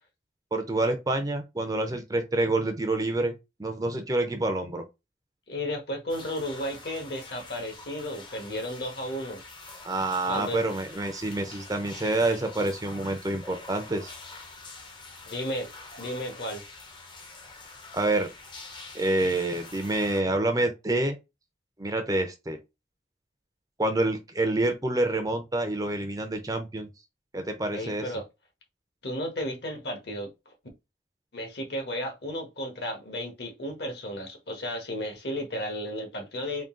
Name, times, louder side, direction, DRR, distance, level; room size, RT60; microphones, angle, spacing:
voice 1, 0.5-3.3 3.6-4.8 9.8-14.1 17.9-18.3 18.9-21.2 21.8-22.6 23.8-26.9 27.3-28.1, right 2 dB, 20° right, 0.5 m, -27 dB
voice 2, 5.5-9.4 10.2-10.6 15.2-15.7 16.0-16.6 27.7-28.2 29.0-30.5 31.3-36.7, equal, 60° left, 1.2 m, -33 dB
sound 1, 6.1-20.2, left 3 dB, 25° left, 0.7 m, -46 dB
3.8 x 2.4 x 3.6 m
head